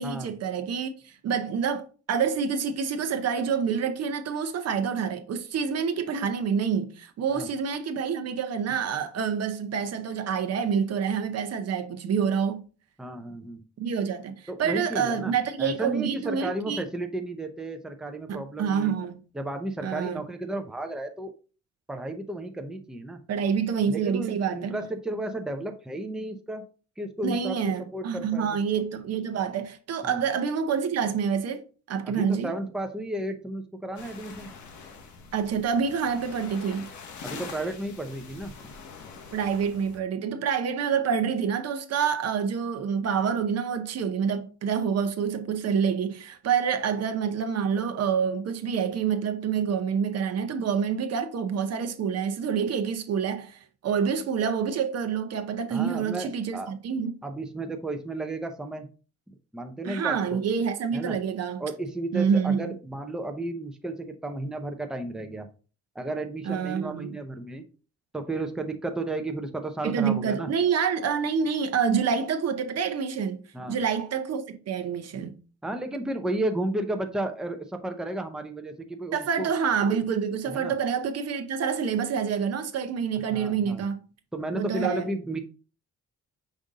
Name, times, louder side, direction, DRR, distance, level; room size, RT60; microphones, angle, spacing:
voice 1, 0.0-12.6 13.8-16.8 18.3-19.2 19.8-20.2 23.3-24.8 27.2-31.6 31.9-32.5 35.3-36.9 39.3-57.2 59.8-61.6 62.1-62.7 66.5-67.1 69.8-73.4 73.7-75.4 79.1-84.0 84.5-85.1, right 6 dB, 55° right, 0.7 m, -27 dB
voice 2, 13.0-13.6 14.5-15.3 15.6-18.9 19.3-21.3 21.9-23.2 23.9-26.6 27.0-28.6 30.0-30.2 32.0-34.5 37.2-38.7 55.7-56.7 57.2-58.9 59.5-60.4 60.9-61.2 61.6-65.5 65.9-67.6 68.1-70.5 73.5-73.8 75.6-79.5 80.5-80.7 83.3-83.8 84.3-85.4, right 1 dB, ahead, 0.6 m, -33 dB
sound 1, 34.0-40.0, left 5 dB, 70° left, 0.9 m, -44 dB
5.3 x 2.6 x 3.6 m
cardioid pair, 90°, 30 cm